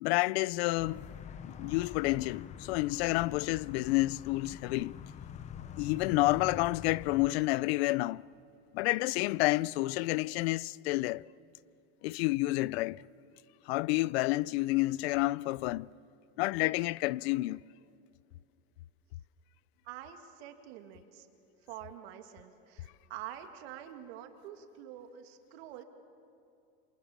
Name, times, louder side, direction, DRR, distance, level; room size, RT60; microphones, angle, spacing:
voice 1, 0.0-1.1 1.4-4.9 5.8-8.2 8.7-11.3 12.0-13.0 13.7-15.9 16.4-17.6, left 20 dB, 75° left, 0.5 m, -29 dB
sound 1, 0.8-7.3, left 8 dB, 20° left, 0.6 m, -45 dB
voice 2, 19.8-21.3 21.7-25.8, right 11 dB, 75° right, 2.5 m, -46 dB
27.5 x 27.5 x 7.4 m
cardioid pair, 165°, 32 cm